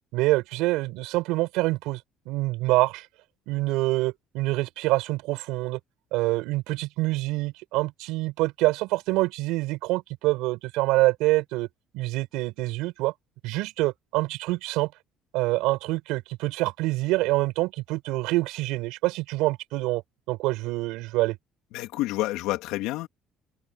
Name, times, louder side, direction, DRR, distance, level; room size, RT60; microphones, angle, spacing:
voice 1, 0.1-2.0 2.3-3.1 3.5-5.8 6.1-11.7 11.9-13.1 13.4-14.9 15.3-20.0 20.3-21.4, right 20 dB, 85° right, 5.3 m, -26 dB
voice 2, 21.7-23.1, left 17 dB, 85° left, 3.1 m, -28 dB
open air
cardioid pair, 110°, 0 cm